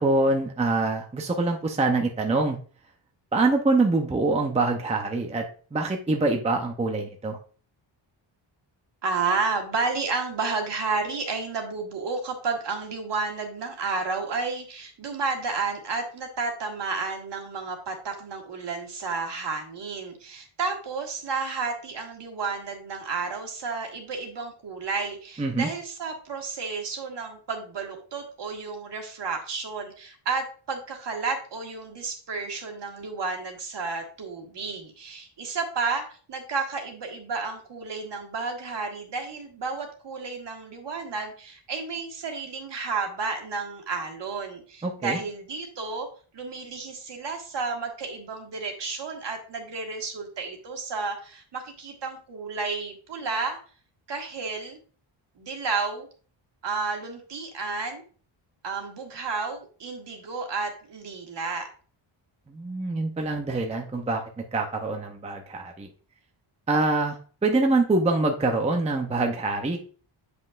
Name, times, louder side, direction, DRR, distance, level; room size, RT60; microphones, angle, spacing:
voice 1, 0.0-2.6 3.3-5.5 5.7-7.4 25.4-25.7 44.8-45.2 62.5-64.2 64.5-65.9 66.7-69.8, right 2 dB, 15° right, 2 dB, 0.6 m, -25 dB
voice 2, 9.0-46.1 46.3-53.6 54.1-54.8 55.4-56.1 56.6-58.0 58.6-61.7, right 4 dB, 55° right, 3 dB, 1.7 m, -31 dB
7.9 x 5.4 x 2.4 m, 0.41 s
wide cardioid pair, 150°, 49 cm